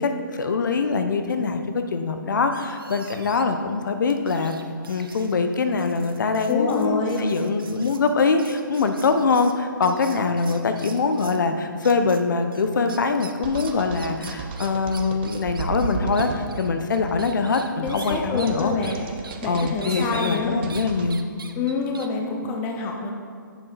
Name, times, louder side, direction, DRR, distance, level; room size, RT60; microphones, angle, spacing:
voice 1, 0.0-4.6 4.9-18.7 19.5-21.2, left 4 dB, 60° left, 7 dB, 0.8 m, -23 dB
sound 1, 2.5-3.6 4.1-11.5 11.8-12.2 12.5-20.9 21.1-22.1, right 5 dB, 85° right, 0.8 m, -42 dB
voice 2, 6.5-7.2 17.8-19.0 19.4-20.6 21.6-23.1, left 4 dB, 15° left, 1 dB, 0.4 m, -27 dB
sound 2, 13.4-21.1, right 4 dB, 30° right, 0.6 m, -34 dB
8.3 x 7.1 x 4.2 m, 2.1 s
hypercardioid pair, 160°, 11 cm